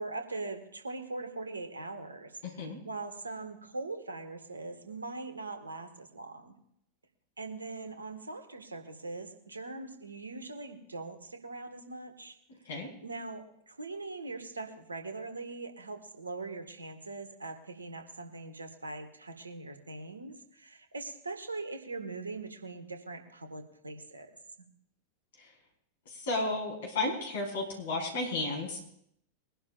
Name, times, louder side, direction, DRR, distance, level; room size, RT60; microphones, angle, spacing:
voice 1, 0.0-6.6 7.4-12.3 13.0-24.3 24.6-24.7, right 3 dB, 80° right, 6 dB, 1.6 m, -41 dB
voice 2, 2.4-2.8 12.7-12.9 25.4-25.5 26.1-28.9, left 2 dB, 60° left, 0 dB, 4.5 m, -33 dB
22.5 x 11.0 x 2.5 m, 0.72 s
figure-of-eight pair, 90°, 0 cm